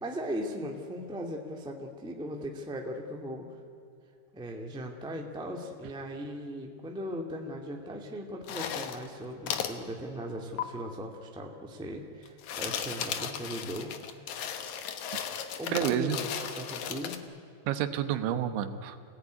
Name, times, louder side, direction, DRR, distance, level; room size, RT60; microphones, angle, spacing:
voice 1, 0.0-3.5 4.3-14.7 15.5-17.2, equal, 5° right, 1 dB, 0.7 m, -38 dB
sound 1, 8.4-9.1 9.5-9.8 10.6-10.7 12.3-17.2, left 8 dB, 70° left, 1.8 m, -35 dB
voice 2, 15.7-16.2 17.7-19.1, right 10 dB, 85° right, 9 dB, 3.5 m, -30 dB
27.0 x 17.5 x 9.7 m, 2.6 s
omnidirectional pair, 5.2 m